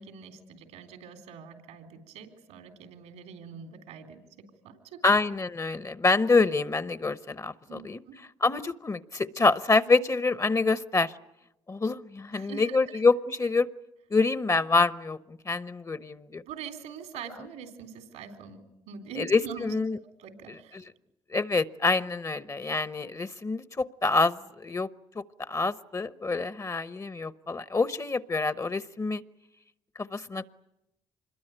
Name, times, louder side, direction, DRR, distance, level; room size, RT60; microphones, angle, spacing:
voice 1, 0.0-5.0 7.7-8.1 12.3-12.8 16.5-19.7 20.2-20.8, right 7 dB, 90° right, 5 dB, 3.6 m, -44 dB
voice 2, 5.0-8.0 8.4-11.1 11.7-13.7 14.1-15.2 15.4-16.4 19.2-20.0 20.5-20.6 21.3-24.9 25.1-29.2 30.0-30.5, left 3 dB, 30° left, 14 dB, 0.9 m, -26 dB
26.0 x 21.5 x 9.0 m, 0.88 s
supercardioid pair, 60°, 11 cm